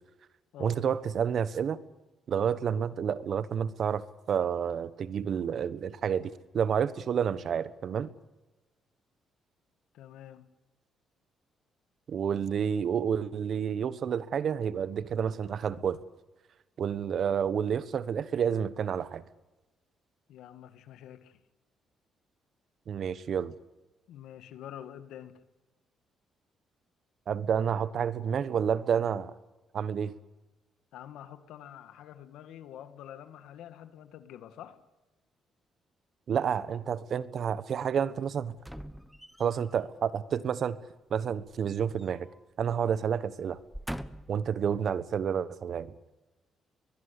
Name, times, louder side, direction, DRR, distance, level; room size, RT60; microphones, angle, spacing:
voice 1, 0.6-1.8 2.3-8.1 12.1-16.0 16.8-19.2 22.9-23.5 27.3-29.3 29.7-30.1 36.3-38.5 39.4-40.8 41.1-42.3 42.6-43.6 44.3-45.9, right 8 dB, 60° right, 16 dB, 1.3 m, -29 dB
voice 2, 9.9-10.5 20.3-21.4 24.1-25.4 30.9-34.8 42.8-42.9, left 10 dB, 85° left, 11 dB, 1.9 m, -47 dB
sound 1, 38.6-39.7 41.3-42.4 42.7-42.9 43.5-44.5 45.1-45.2, equal, ahead, 1.2 m, -43 dB
22.5 x 21.0 x 8.4 m, 1.1 s
cardioid pair, 90°, 0 cm